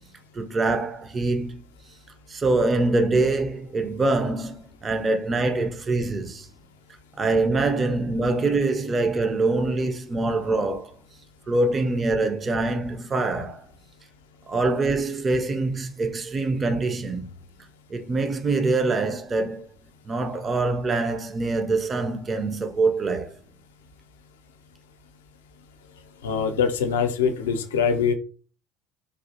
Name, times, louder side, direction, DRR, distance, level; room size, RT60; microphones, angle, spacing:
voice 1, 0.3-1.6 2.3-6.5 7.2-10.9 11.5-13.7 14.5-17.3 17.9-19.7 20.1-23.4, right 3 dB, 30° right, 0.5 m, -24 dB
voice 2, 26.2-28.1, left 6 dB, 75° left, 0.4 m, -23 dB
3.4 x 2.4 x 2.7 m
figure-of-eight pair, 65°, 0 cm